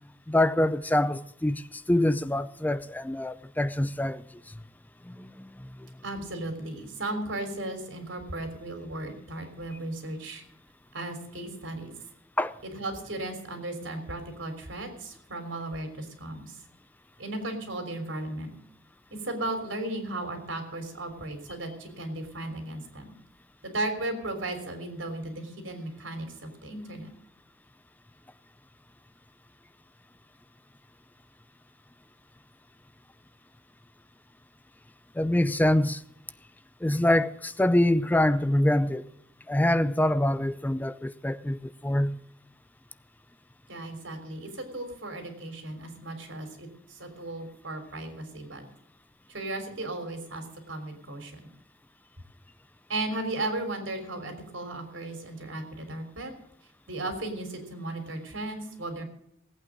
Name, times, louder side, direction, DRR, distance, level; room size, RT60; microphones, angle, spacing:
voice 1, 0.3-4.6 5.0-5.9 12.4-12.6 35.1-36.0 36.8-39.1 39.5-42.2, left 1 dB, 10° left, 0.4 m, -25 dB
voice 2, 6.0-10.4 10.9-11.9 12.6-16.6 17.2-18.5 19.1-23.1 23.6-27.1 43.7-48.6 49.3-51.4 52.9-56.3 56.9-59.0, right 2 dB, 85° right, 3.5 m, -35 dB
18.0 x 8.7 x 6.3 m
head